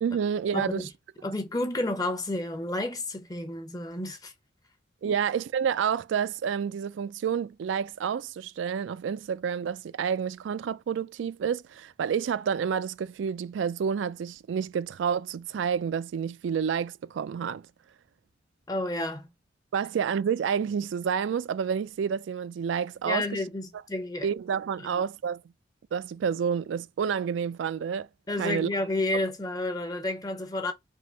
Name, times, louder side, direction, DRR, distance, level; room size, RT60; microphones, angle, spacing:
voice 1, 0.0-0.9 5.0-17.6 19.7-23.3 24.2-25.4 25.9-28.1 28.4-28.7, right 7 dB, 80° right, 0.3 m, -29 dB
voice 2, 1.2-4.3 5.0-5.2 18.7-19.3 23.1-24.3 24.8-25.0 28.3-30.7, left 2 dB, 20° left, 0.7 m, -31 dB
3.6 x 2.8 x 3.8 m
head